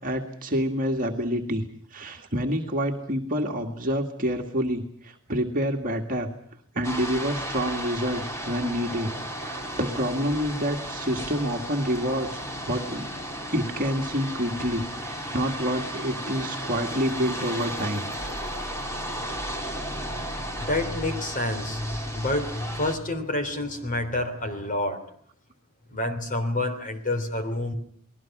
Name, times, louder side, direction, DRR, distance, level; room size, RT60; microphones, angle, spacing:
voice 1, 0.0-1.6 1.9-6.3 6.8-9.1 9.4-12.4 12.7-13.1 13.5-18.0, equal, 40° right, 2 dB, 2.0 m, -27 dB
sound 1, 6.8-22.9, equal, 15° left, 3.4 m, -34 dB
voice 2, 20.1-25.1 25.9-27.7, left 1 dB, 40° left, 8 dB, 3.4 m, -29 dB
29.5 x 20.0 x 6.0 m, 0.63 s
head